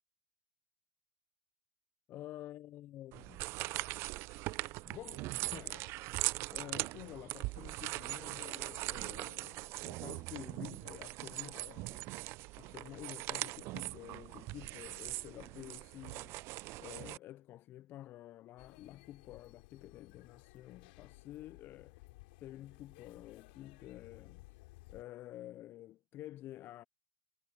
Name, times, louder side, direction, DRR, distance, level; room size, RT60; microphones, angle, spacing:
voice 1, 2.1-3.4 4.8-12.1 12.6-22.1 22.4-24.6 24.9-26.8, left 14 dB, 35° left, 0.4 m, -50 dB
sound 1, 3.1-17.2, right 20 dB, 40° right, 0.4 m, -41 dB
sound 2, 18.6-25.0, left 24 dB, 60° left, 5.2 m, -58 dB
hypercardioid pair, 120°, 6 cm